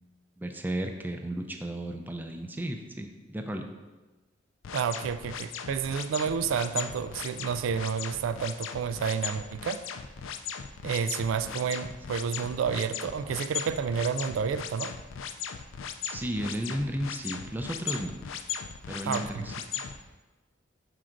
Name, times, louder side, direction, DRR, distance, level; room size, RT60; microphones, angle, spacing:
voice 1, 0.4-3.6 16.1-18.1 18.9-19.5, right 1 dB, 10° right, 5 dB, 0.4 m, -34 dB
sound 1, 4.6-19.9, left 8 dB, 85° left, 0.4 m, -37 dB
voice 2, 4.7-9.8 10.8-14.9 19.1-19.5, right 6 dB, 85° right, 11 dB, 0.3 m, -30 dB
6.2 x 4.5 x 3.8 m, 1.2 s
head